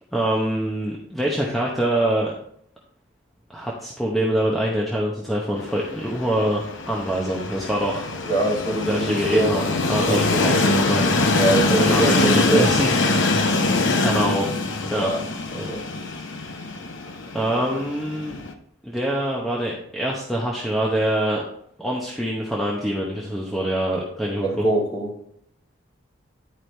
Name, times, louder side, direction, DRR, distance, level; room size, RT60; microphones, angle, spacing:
voice 1, 0.1-2.3 3.5-8.1 8.8-11.4 11.7-12.9 13.1-13.4 14.0-14.5 14.9-15.1 15.6-15.7 16.5-16.6 17.3-18.4 18.8-21.4 21.8-24.6, right 1 dB, ahead, -4 dB, 0.8 m, -25 dB
Train, 5.6-18.5, left 2 dB, 65° left, 0.7 m, -23 dB
voice 2, 8.2-9.5 10.0-10.2 11.3-12.7 14.9-15.2 15.5-15.8 24.4-25.1, right 2 dB, 25° left, -6 dB, 2.7 m, -23 dB
10.5 x 4.8 x 3.3 m, 0.68 s
head